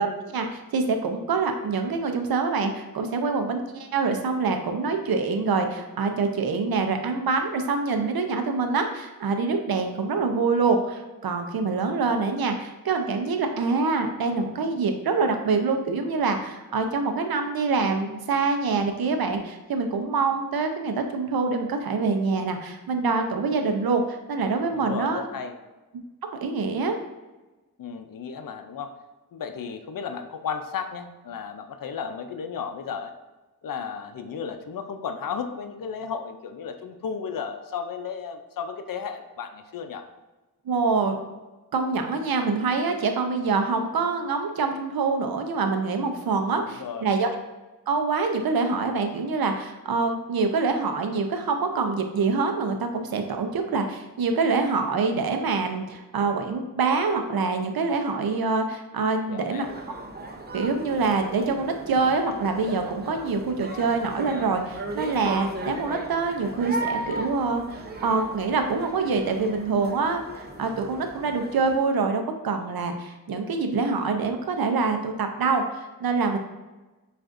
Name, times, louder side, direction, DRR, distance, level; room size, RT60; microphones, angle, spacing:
voice 1, 0.0-25.2 26.4-27.0 40.7-41.2 41.7-47.3 47.9-59.7 60.5-76.4, right 4 dB, 90° right, 5 dB, 0.6 m, -25 dB
voice 2, 24.7-25.5 27.8-28.9 29.3-33.2 33.6-40.0 46.6-47.1 59.3-59.7, left 6 dB, 70° left, 7 dB, 0.5 m, -34 dB
sound 1, 59.6-71.8, right 1 dB, 30° right, 0.6 m, -36 dB
7.5 x 2.5 x 2.5 m, 1.1 s
wide cardioid pair, 80°, 35 cm